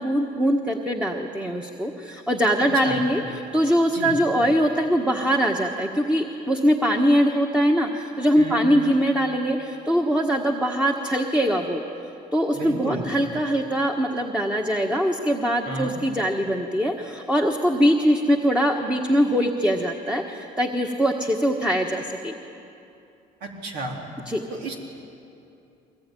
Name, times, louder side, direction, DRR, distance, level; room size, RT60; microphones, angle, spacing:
voice 1, 0.0-11.8 12.3-22.3 24.3-24.4, equal, 5° right, 1 dB, 1.5 m, -22 dB
voice 2, 12.5-13.0 15.6-15.9 23.4-24.0 24.5-24.8, right 2 dB, 80° right, 0 dB, 4.1 m, -31 dB
23.5 x 20.0 x 9.3 m, 2.7 s
cardioid pair, 110°, 17 cm